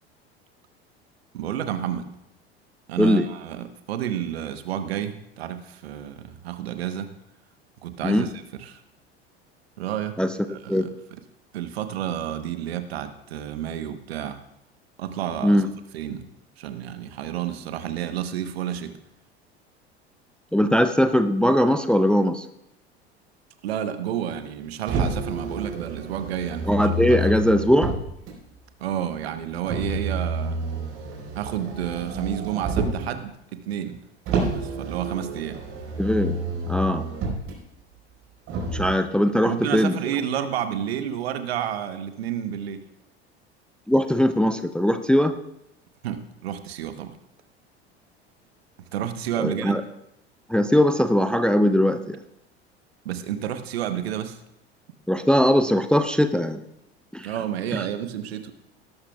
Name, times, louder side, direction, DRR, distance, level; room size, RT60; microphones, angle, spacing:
voice 1, 1.3-2.1 2.9-7.2 7.8-8.8 9.8-10.2 10.5-11.2 11.5-14.4 15.0-15.6 15.9-16.3 16.6-19.0 23.6-27.5 28.8-30.6 31.3-34.0 34.5-35.6 39.4-42.9 46.0-47.2 48.8-49.8 53.0-54.4 57.2-58.5, right 10 dB, 65° right, 9 dB, 1.1 m, -30 dB
voice 2, 20.5-22.5 26.7-27.9 36.0-36.4 36.7-37.1 38.7-40.0 43.9-45.3 49.4-49.8 50.5-52.2 55.1-56.6 57.1-57.3, equal, 5° left, 11 dB, 0.5 m, -20 dB
Motor vehicle (road), 24.9-28.3 29.6-33.1 34.3-37.5 38.5-38.9, right 2 dB, 45° right, 4.8 m, -29 dB
18.0 x 13.0 x 2.3 m, 0.82 s
figure-of-eight pair, 75°, 33 cm